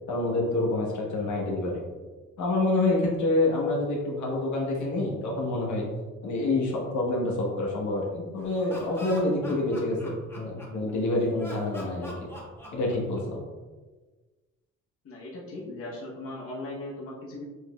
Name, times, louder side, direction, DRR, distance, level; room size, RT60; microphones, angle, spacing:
voice 1, 0.1-1.8 2.4-5.8 6.2-12.3 12.7-13.4, left 2 dB, 75° left, -2 dB, 1.2 m, -27 dB
Laughter, 8.4-10.9 11.4-13.4, left 1 dB, 10° left, 1.1 m, -43 dB
voice 2, 15.0-17.4, left 2 dB, 50° left, -4 dB, 1.0 m, -38 dB
6.2 x 3.1 x 2.3 m, 1.3 s
cardioid pair, 90°, 30 cm